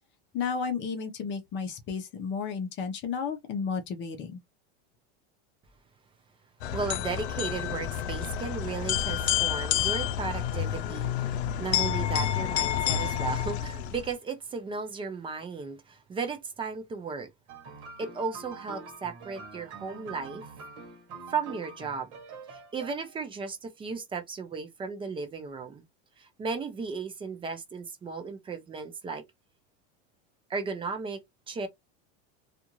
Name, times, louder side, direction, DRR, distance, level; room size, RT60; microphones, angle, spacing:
voice 1, 0.3-4.4, left 6 dB, 35° left, 0.8 m, -32 dB
sound 1, 6.6-14.1, left 10 dB, 90° left, 0.6 m, -29 dB
voice 2, 6.7-17.3 18.0-20.4 21.3-22.1 22.5-25.8 26.2-29.2 30.5-31.2 31.5-31.7, right 5 dB, 15° right, 0.5 m, -35 dB
sound 2, 17.5-23.3, right 5 dB, 50° right, 1.2 m, -45 dB
2.5 x 2.5 x 2.9 m
supercardioid pair, 140°, 33 cm